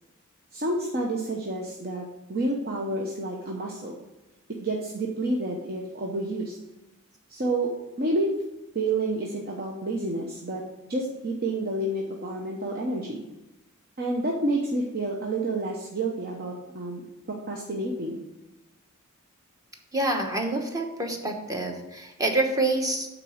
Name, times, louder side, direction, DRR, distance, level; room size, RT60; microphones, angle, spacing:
voice 1, 0.5-3.9 4.6-6.6 7.3-7.7 8.0-8.3 8.7-10.6 10.9-13.2 14.0-17.0 17.5-18.2, right 2 dB, 45° right, -1 dB, 0.9 m, -29 dB
voice 2, 19.9-23.1, right 2 dB, 15° right, 3 dB, 1.1 m, -27 dB
8.9 x 4.1 x 6.3 m, 1.0 s
head